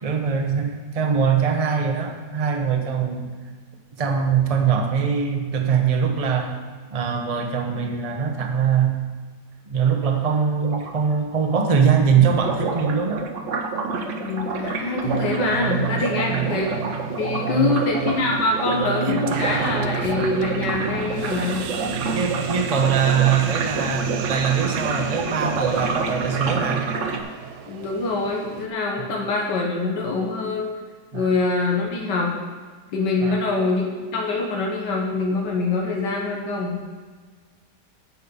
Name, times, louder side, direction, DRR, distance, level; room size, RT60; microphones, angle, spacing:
voice 1, 0.0-3.3 4.0-6.5 6.9-9.0 9.7-13.2 16.0-16.6 17.3-17.8 22.1-26.9 29.0-29.3 31.1-31.3 33.2-33.4, right 6 dB, 30° right, 3 dB, 0.8 m, -22 dB
sound 1, 10.6-10.9 12.2-27.2, right 4 dB, 55° right, 1.1 m, -28 dB
voice 2, 14.2-16.7 17.2-21.6 27.7-30.7 31.1-32.3 32.9-36.7, left 3 dB, 85° left, -1 dB, 1.9 m, -24 dB
sound 2, 15.0-28.7, right 8 dB, 75° right, 1.2 m, -32 dB
sound 3, 19.3-26.6, left 1 dB, 45° left, 1.3 m, -39 dB
9.0 x 5.3 x 7.0 m, 1.5 s
omnidirectional pair, 1.8 m